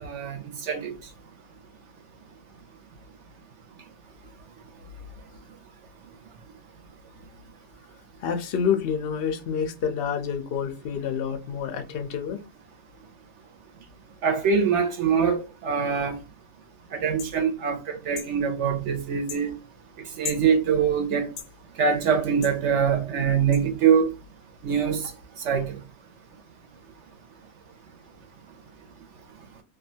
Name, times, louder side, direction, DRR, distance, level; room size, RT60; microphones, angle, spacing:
voice 1, 0.0-0.9 14.2-16.2 16.9-19.5 20.2-21.3 21.8-24.1 24.6-25.0 25.4-25.8, right 6 dB, 65° right, 0.8 m, -23 dB
voice 2, 8.2-12.4 24.9-25.0, left 7 dB, 65° left, 0.5 m, -28 dB
sound 1, 17.2-17.3 18.1-18.3 19.3-19.4 20.2-20.5 21.4-21.5 22.4-22.6 23.5-23.6, left 10 dB, 90° left, 1.1 m, -36 dB
2.6 x 2.3 x 2.6 m
omnidirectional pair, 1.6 m